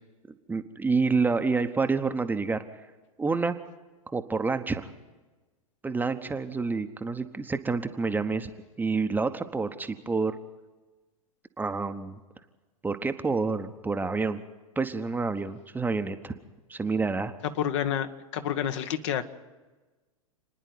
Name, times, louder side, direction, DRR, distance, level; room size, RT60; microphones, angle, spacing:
voice 1, 0.5-2.6 3.2-3.6 4.1-4.9 5.8-8.5 8.8-10.4 11.6-12.2 12.8-14.4 14.8-16.3 16.7-17.3, right 4 dB, 10° right, 8 dB, 1.0 m, -28 dB
voice 2, 17.6-19.3, left 9 dB, 55° left, 8 dB, 1.3 m, -29 dB
29.5 x 10.0 x 9.4 m, 1.2 s
figure-of-eight pair, 100°, 18 cm